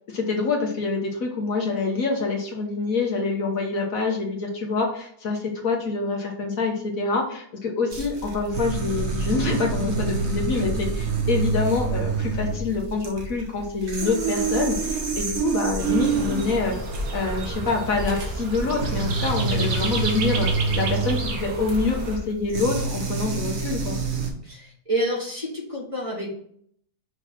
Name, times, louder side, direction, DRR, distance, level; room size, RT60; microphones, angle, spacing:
voice 1, 0.1-16.8 17.1-20.5 20.7-24.0, left 4 dB, 60° left, 1 dB, 1.5 m, -26 dB
sound 1, 7.9-24.3, right 4 dB, 45° right, 1.4 m, -27 dB
sound 2, 15.8-22.2, right 3 dB, 70° right, 1.6 m, -31 dB
voice 2, 24.4-26.3, right 1 dB, 20° right, -4 dB, 2.0 m, -28 dB
6.0 x 3.8 x 5.9 m, 0.65 s
omnidirectional pair, 1.7 m